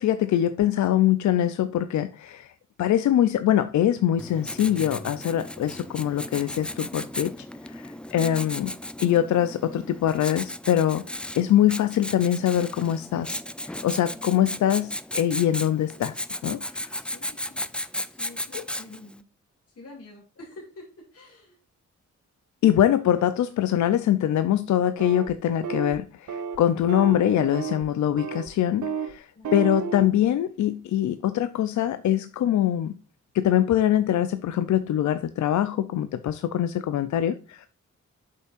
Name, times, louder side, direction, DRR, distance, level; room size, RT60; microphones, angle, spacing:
voice 1, 0.0-2.5 2.8-7.3 7.6-8.7 9.0-13.4 13.7-16.1 16.4-16.9 22.6-32.9 33.3-37.7, left 11 dB, 75° left, 0.5 m, -23 dB
Writing, 4.2-19.1, left 1 dB, 5° left, 0.4 m, -35 dB
voice 2, 17.0-17.6 18.0-19.2 19.7-21.6 29.3-29.5, left 2 dB, 55° left, 2.5 m, -47 dB
sound 1, 25.0-25.3 25.6-26.0 26.3-26.6 26.9-27.9 28.2-28.5 28.8-29.1 29.4-30.1, right 6 dB, 80° right, 0.9 m, -31 dB
8.1 x 5.6 x 2.5 m
cardioid pair, 80°, 29 cm